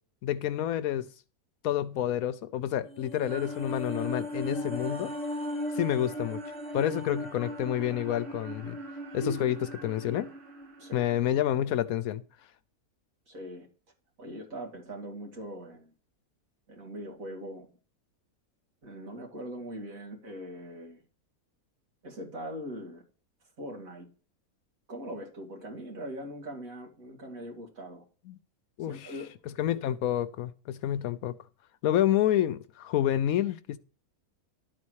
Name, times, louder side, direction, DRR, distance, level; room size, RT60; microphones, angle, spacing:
voice 1, 0.2-1.1 1.6-5.1 5.7-6.4 6.7-8.8 9.1-10.3 10.9-12.2 28.3-28.4 28.8-29.1 29.5-31.4 31.8-33.8, left 11 dB, 75° left, 1.0 m, -29 dB
sound 1, 2.8-11.3 11.6-11.7, left 1 dB, 5° left, 1.1 m, -38 dB
sound 2, 3.3-11.3, right 3 dB, 80° right, 2.1 m, -47 dB
voice 2, 13.3-13.7 14.2-15.9 16.7-17.7 18.8-21.0 22.0-23.0 23.6-24.1 24.9-28.0 28.9-29.3, equal, 65° right, 2.8 m, -41 dB
12.0 x 4.2 x 6.3 m
omnidirectional pair, 1.5 m